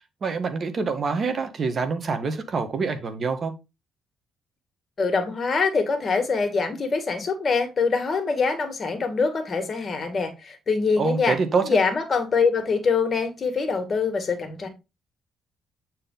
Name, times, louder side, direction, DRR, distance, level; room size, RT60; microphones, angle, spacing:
voice 1, 0.2-3.5 11.0-11.7, right 5 dB, 45° right, 1.5 m, -26 dB
voice 2, 5.0-14.7, left 4 dB, 40° left, 2.1 m, -24 dB
8.7 x 4.5 x 3.9 m
cardioid pair, 90°, 0 cm